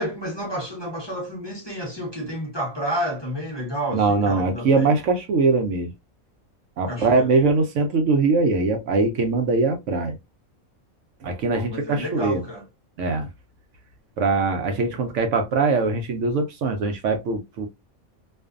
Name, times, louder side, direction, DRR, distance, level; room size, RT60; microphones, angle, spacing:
voice 1, 0.0-4.9 6.9-7.3 11.5-12.6, equal, 25° left, 0.6 m, -30 dB
voice 2, 3.9-5.9 6.8-10.2 11.2-12.4 13.0-13.3 14.2-17.7, right 3 dB, 65° right, 0.9 m, -22 dB
2.5 x 2.2 x 2.3 m
omnidirectional pair, 1.5 m